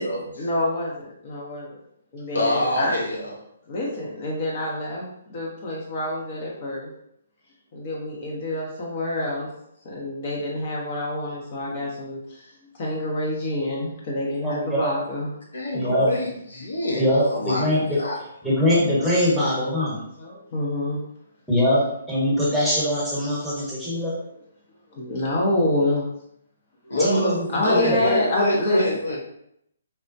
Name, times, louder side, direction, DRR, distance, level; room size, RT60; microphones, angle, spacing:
voice 1, 0.4-1.7 2.1-2.9 3.7-6.9 7.7-9.5 9.8-15.3 19.9-21.0 24.9-26.1 26.8-27.0 27.5-28.8, left 1 dB, 45° left, -4 dB, 0.7 m, -27 dB
voice 2, 2.3-3.3 11.7-11.8 15.5-17.7 18.0-18.2 26.9-29.2, left 1 dB, 85° left, -2 dB, 0.9 m, -25 dB
voice 3, 14.4-14.9 15.7-16.1 17.0-18.0 18.4-20.0 21.5-21.8 22.1-24.1 27.0-27.4 27.7-28.0, equal, ahead, -8 dB, 1.0 m, -22 dB
3.2 x 2.1 x 2.6 m, 0.74 s
hypercardioid pair, 150°, 0 cm